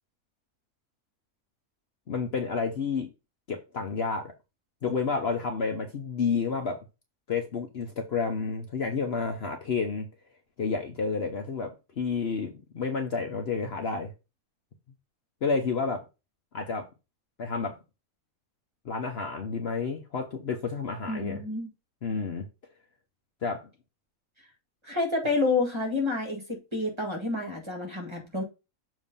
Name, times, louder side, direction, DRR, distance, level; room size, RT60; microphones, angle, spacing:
voice 1, 2.1-3.1 3.5-4.3 4.8-6.8 7.3-10.1 10.6-14.1 15.4-16.0 16.5-16.9 17.4-17.8 18.8-21.4 22.0-22.5 23.4-23.6, left 5 dB, 50° left, 1.0 m, -30 dB
voice 2, 21.1-21.7 24.8-28.4, left 3 dB, 20° right, 1.8 m, -29 dB
7.0 x 3.1 x 5.4 m
omnidirectional pair, 1.5 m